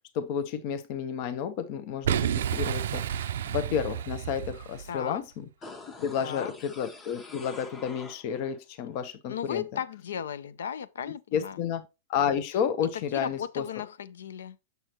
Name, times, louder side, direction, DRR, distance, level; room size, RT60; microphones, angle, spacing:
voice 1, 0.1-5.4 6.0-9.6 11.3-11.8 12.1-13.6, left 8 dB, 50° left, 0.7 m, -31 dB
Boom, 2.0-5.0, right 10 dB, 75° right, 0.4 m, -30 dB
voice 2, 4.9-5.2 6.2-6.5 9.3-11.6 12.9-14.6, left 8 dB, 85° left, 0.5 m, -36 dB
sound 1, 5.6-8.6 8.9-9.0, left 3 dB, 20° left, 1.1 m, -46 dB
6.7 x 6.2 x 2.9 m
hypercardioid pair, 120°, 0 cm